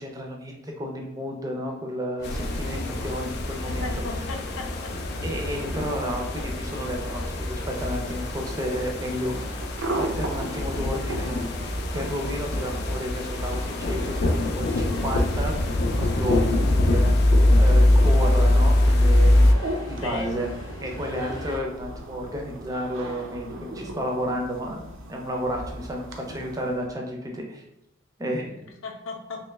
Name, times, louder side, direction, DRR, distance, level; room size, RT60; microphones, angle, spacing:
voice 1, 0.0-3.9 5.2-9.3 9.9-16.4 16.7-17.2 17.5-19.6 19.9-20.5 20.8-27.6 28.2-28.6, equal, 20° right, 1 dB, 0.5 m, -32 dB
sound 1, 2.2-19.5, left 1 dB, 55° left, 0.4 m, -23 dB
sound 2, 2.2-21.6, equal, 20° left, 0.8 m, -38 dB
voice 2, 3.8-4.9 20.0-20.3 28.8-29.4, left 3 dB, 90° left, 3 dB, 0.7 m, -35 dB
sound 3, 7.6-27.0, right 1 dB, 70° right, 0.6 m, -38 dB
3.1 x 3.0 x 3.4 m, 0.85 s
head